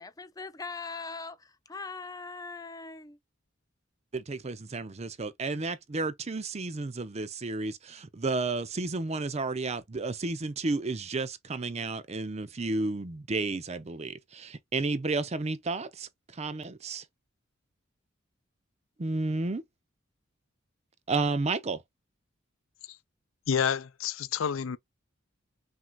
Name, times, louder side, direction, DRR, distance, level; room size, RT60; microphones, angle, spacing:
voice 1, 0.0-3.2, left 4 dB, 20° left, 0.5 m, -41 dB
voice 2, 4.1-17.0 19.0-19.6 21.1-21.8, right 3 dB, 35° right, 0.6 m, -32 dB
voice 3, 23.5-24.8, left 7 dB, 80° left, 0.5 m, -28 dB
5.9 x 2.8 x 2.3 m
head